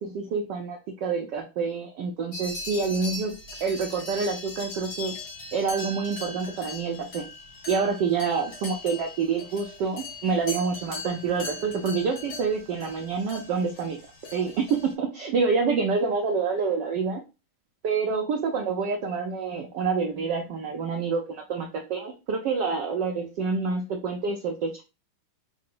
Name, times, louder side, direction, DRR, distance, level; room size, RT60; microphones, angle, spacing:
voice 1, 0.0-5.1 5.5-7.2 7.7-14.0 14.3-17.2 17.8-24.8, right 5 dB, 70° right, 2 dB, 1.1 m, -27 dB
sound 1, 2.3-14.9, left 2 dB, 50° left, 1.7 m, -39 dB
4.7 x 2.1 x 3.7 m, 0.28 s
omnidirectional pair, 2.4 m